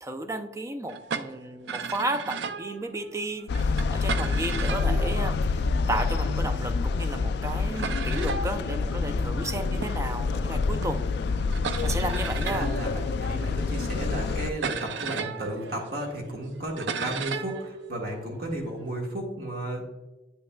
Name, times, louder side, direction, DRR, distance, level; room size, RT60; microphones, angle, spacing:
voice 1, 0.0-5.6 5.9-11.1 11.8-12.7, right 1 dB, 15° right, 9 dB, 0.4 m, -33 dB
sound 1, 0.9-6.2 6.9-7.0 7.2-7.3 7.8-18.9, right 5 dB, 80° right, 0.5 m, -37 dB
sound 2, 3.5-14.5, left 4 dB, 65° left, 0.3 m, -27 dB
voice 2, 12.4-20.0, right 1 dB, 60° right, 0 dB, 1.5 m, -33 dB
8.7 x 5.4 x 2.2 m, 1.1 s
head